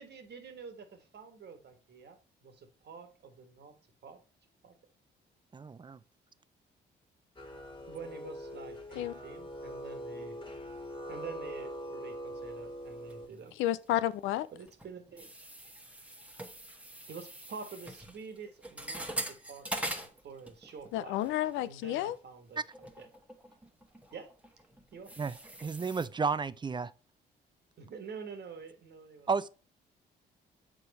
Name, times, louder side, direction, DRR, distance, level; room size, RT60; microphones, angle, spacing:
voice 1, 0.0-3.7 4.0-4.2 4.6-4.7 7.9-10.4 11.1-13.5 14.5-15.3 17.1-21.2 21.6-23.1 24.1-24.3 24.9-25.1 27.8-29.3, right 5 dB, 55° right, 1.5 m, -47 dB
voice 2, 5.5-6.0 22.6-22.7 25.2-25.4 25.6-26.9 29.3-29.5, right 5 dB, 25° right, 0.5 m, -32 dB
sound 1, 7.4-13.3, equal, 25° left, 1.7 m, -43 dB
sound 2, 13.1-14.0 14.3-20.9 21.2-21.5 22.1-22.2 22.7-26.1, right 1 dB, 5° right, 1.3 m, -43 dB
voice 3, 13.6-14.5 20.9-22.2, left 13 dB, 80° left, 0.4 m, -31 dB
6.5 x 4.3 x 4.1 m
supercardioid pair, 60°, 20 cm